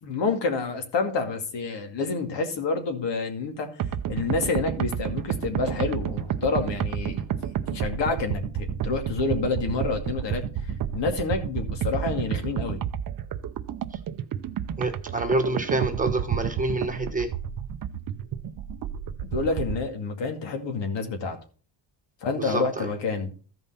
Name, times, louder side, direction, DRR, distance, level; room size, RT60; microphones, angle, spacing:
voice 1, 0.0-3.7 4.1-7.3 7.7-10.4 10.9-12.8 19.2-21.4 22.2-23.3, left 4 dB, 65° left, 5 dB, 2.3 m, -28 dB
sound 1, 3.8-19.8, right 9 dB, 45° right, 0.7 m, -30 dB
voice 2, 14.8-17.3 22.4-22.9, right 2 dB, 15° right, 4 dB, 1.2 m, -27 dB
14.0 x 5.4 x 4.1 m, 0.39 s
cardioid pair, 140°, 45 cm